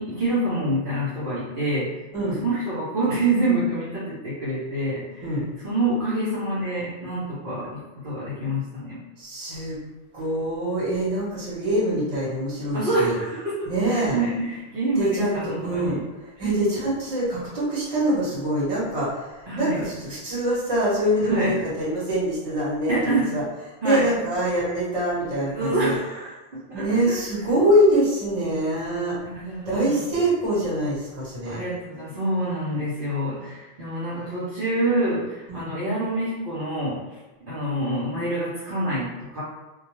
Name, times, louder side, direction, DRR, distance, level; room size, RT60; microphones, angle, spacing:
voice 1, 0.0-1.9 2.2-5.3 5.6-9.0 12.7-16.0 16.4-16.5 19.5-19.8 21.2-21.6 22.9-23.3 23.8-24.0 25.5-27.1 29.2-30.2 31.4-37.0 37.5-39.4, right 1 dB, 60° right, -10 dB, 0.8 m, -27 dB
voice 2, 9.2-9.8 10.1-13.1 13.6-14.2 15.0-23.0 23.3-23.4 23.8-26.0 26.7-29.2 29.7-31.6 35.5-35.7, right 1 dB, 35° right, -8 dB, 1.0 m, -24 dB
2.3 x 2.2 x 2.9 m, 1.1 s
omnidirectional pair, 1.0 m